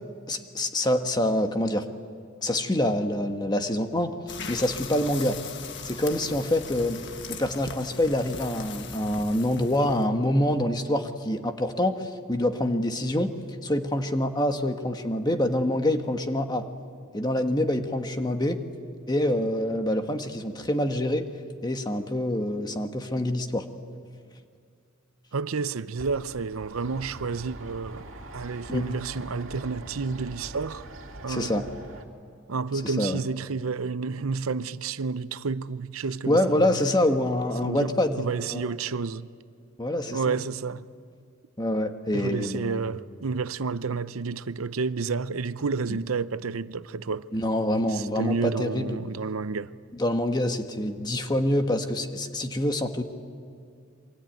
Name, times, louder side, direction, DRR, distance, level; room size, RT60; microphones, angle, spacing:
voice 1, 0.3-1.8 2.4-4.1 4.5-5.4 5.8-7.0 7.3-13.3 13.6-16.6 17.1-18.6 19.1-21.3 21.6-23.6 28.7-28.8 31.3-31.6 32.8-33.2 36.3-38.2 38.5-38.7 39.8-40.4 41.6-42.8 45.9-46.0 47.3-49.0 49.9-53.0, left 1 dB, 20° left, 1.4 m, -26 dB
Summer Barbecue, 4.3-10.1, left 5 dB, 55° left, 1.6 m, -40 dB
voice 2, 25.3-28.0 28.3-30.9 31.2-31.7 32.5-36.8 37.6-39.3 40.1-40.9 42.1-47.3 47.9-49.7, right 4 dB, 90° right, 0.7 m, -30 dB
sound 1, 26.0-32.1, right 1 dB, 70° right, 2.5 m, -43 dB
27.0 x 24.0 x 9.2 m
head